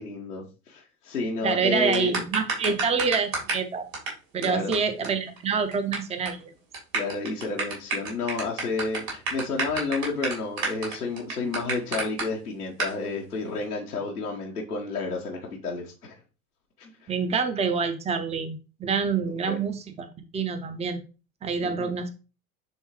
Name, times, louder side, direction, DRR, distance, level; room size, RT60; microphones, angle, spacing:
voice 1, 0.0-2.2 4.4-4.8 6.9-16.2 16.8-17.1 19.4-19.6 21.6-21.9, left 4 dB, 85° left, -4 dB, 1.1 m, -31 dB
voice 2, 1.4-3.9 4.3-6.5 17.1-21.0 21.4-22.1, right 5 dB, 15° right, 8 dB, 0.7 m, -27 dB
sound 1, 1.9-3.7 3.9-4.1 4.4-4.5 4.7-4.8 5.0-5.1 5.4-6.0 6.3-6.4 6.7-12.2 12.8-12.9, right 4 dB, 65° right, 3.6 m, -29 dB
9.9 x 3.6 x 3.0 m, 0.34 s
figure-of-eight pair, 70°, 44 cm